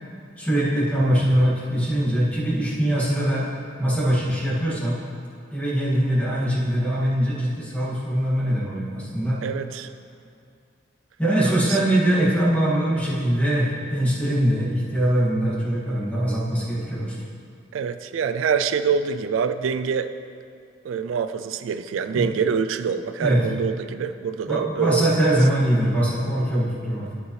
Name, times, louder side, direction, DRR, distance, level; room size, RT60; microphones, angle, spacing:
voice 1, 0.4-3.5 3.8-5.0 5.5-9.4 11.2-17.2 22.1-22.2 23.2-23.4 24.5-27.1, right 1 dB, 10° left, -9 dB, 2.1 m, -22 dB
voice 2, 9.4-9.9 11.7-11.8 17.7-20.1 20.8-25.1, right 6 dB, 85° right, 11 dB, 0.3 m, -25 dB
13.5 x 5.3 x 3.3 m, 2.4 s
head